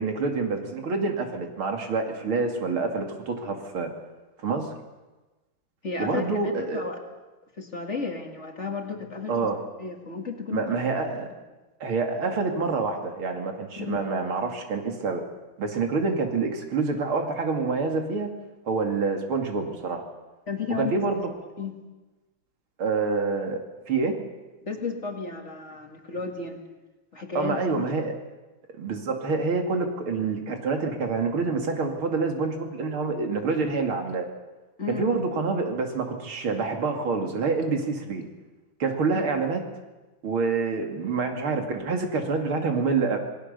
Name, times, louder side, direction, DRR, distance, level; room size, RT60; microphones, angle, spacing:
voice 1, 0.0-3.9 4.4-4.7 6.0-6.8 9.3-9.6 10.5-11.3 11.8-15.2 15.6-18.3 18.7-20.0 20.8-21.2 22.8-23.6 23.9-24.2 27.3-28.1 28.8-34.3 34.9-38.2 38.8-39.6 40.2-43.2, right 4 dB, 80° right, 4 dB, 3.3 m, -27 dB
voice 2, 5.8-7.0 7.6-9.3 9.8-10.7 13.8-14.0 20.5-21.0 21.6-21.7 24.6-26.6 27.1-27.9 34.8-35.1 39.1-39.2, left 4 dB, 35° left, 3 dB, 2.4 m, -33 dB
27.5 x 19.0 x 6.8 m, 1.2 s
omnidirectional pair, 2.3 m